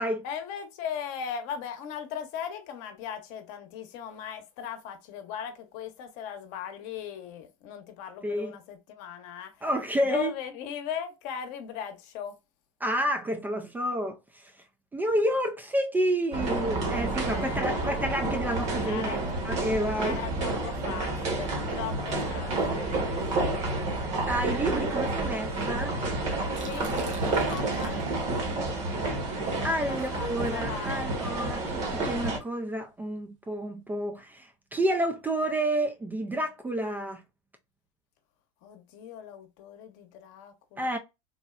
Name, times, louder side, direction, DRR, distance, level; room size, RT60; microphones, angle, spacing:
voice 1, 0.2-9.7 10.0-12.4 17.3-18.0 18.8-19.4 20.0-23.7 26.6-28.0 29.7-31.0 38.6-41.0, left 8 dB, 55° left, 0.8 m, -38 dB
voice 2, 9.6-10.3 12.8-14.5 14.9-19.2 19.4-20.2 24.3-26.0 29.6-37.2 40.8-41.0, right 1 dB, 10° right, 0.3 m, -29 dB
sound 1, 16.3-32.4, right 2 dB, 45° right, 1.1 m, -30 dB
Liquid, 26.4-32.2, right 5 dB, 90° right, 0.8 m, -43 dB
3.6 x 2.0 x 2.4 m
hypercardioid pair, 105°, 16 cm